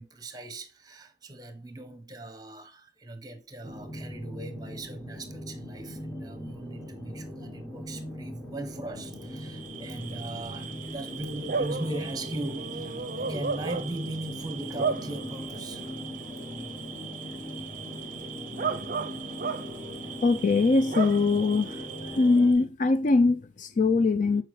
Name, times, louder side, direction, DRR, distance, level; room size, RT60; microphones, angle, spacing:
voice 1, 0.0-15.9, right 2 dB, 20° right, 1.0 m, -39 dB
sound 1, 3.6-22.5, left 1 dB, 5° left, 0.9 m, -40 dB
Bark / Cricket, 9.3-22.6, right 5 dB, 50° right, 0.6 m, -36 dB
voice 2, 20.2-21.8 22.2-24.4, left 3 dB, 45° left, 0.4 m, -22 dB
6.8 x 4.6 x 3.1 m
head